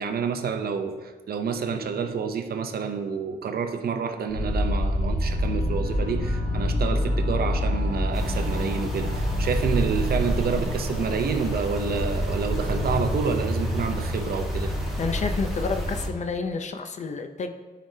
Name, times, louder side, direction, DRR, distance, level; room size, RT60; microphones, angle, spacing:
voice 1, 0.0-14.7, right 5 dB, 65° right, 7 dB, 0.6 m, -28 dB
sound 1, 4.3-16.1, equal, 80° left, 2.6 m, -27 dB
sound 2, 8.1-16.1, equal, ahead, 1.4 m, -41 dB
voice 2, 15.0-17.5, left 4 dB, 45° left, 7 dB, 0.6 m, -29 dB
12.5 x 5.1 x 2.8 m, 1.3 s
wide cardioid pair, 125°, 17 cm